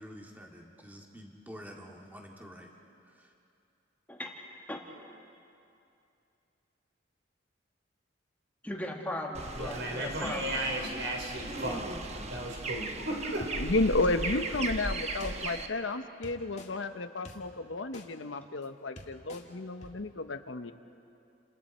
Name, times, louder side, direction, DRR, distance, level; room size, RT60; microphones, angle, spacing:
voice 1, 0.0-2.7 3.2-3.3, equal, 10° right, 0 dB, 2.0 m, -48 dB
voice 2, 8.6-10.6, left 1 dB, 10° left, -1 dB, 1.9 m, -38 dB
sound 1, 9.3-15.7, right 2 dB, 35° right, 1.1 m, -37 dB
voice 3, 9.5-11.9 12.1-13.5, right 1 dB, 65° right, 0 dB, 4.3 m, -35 dB
voice 4, 13.6-20.7, left 2 dB, 85° left, 9 dB, 1.0 m, -32 dB
sound 2, 14.5-14.6 15.2-15.3 16.2-16.7 17.2-17.4 17.9-18.0 18.6-18.7 19.0-19.4 19.8-19.9, left 2 dB, 35° left, 2.1 m, -46 dB
30.0 x 28.0 x 4.4 m, 2.6 s
head